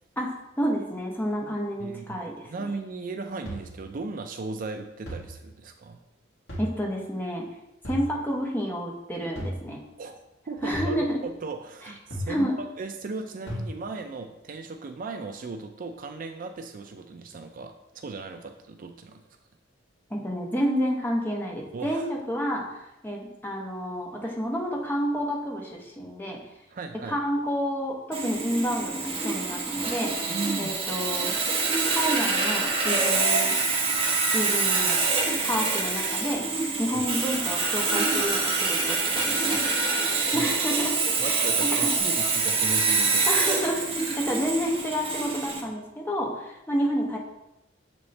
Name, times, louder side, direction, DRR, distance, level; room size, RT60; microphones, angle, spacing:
voice 1, 0.6-2.5 6.6-7.5 7.9-9.8 10.6-11.2 12.3-12.6 20.1-26.4 27.1-30.1 30.6-31.3 31.9-33.6 34.3-35.0 35.4-36.4 36.8-39.6 40.3-41.0 41.2-41.9 43.3-47.2, equal, 10° left, -1 dB, 0.9 m, -29 dB
voice 2, 1.8-6.0 10.0-19.2 21.7-22.1 26.7-27.2 30.3-30.8 36.9-37.0 39.6-39.7 40.1-40.5 41.2-43.3, right 3 dB, 45° right, 6 dB, 0.4 m, -37 dB
sound 1, 3.5-3.9 5.1-5.5 6.5-6.9 7.8-8.2 9.4-9.7 10.7-11.1 12.1-12.5 13.5-13.7, equal, 65° left, 2.1 m, -35 dB
Sawing, 28.1-45.6, right 4 dB, 30° right, 0.9 m, -26 dB
7.1 x 4.1 x 3.2 m, 0.91 s
head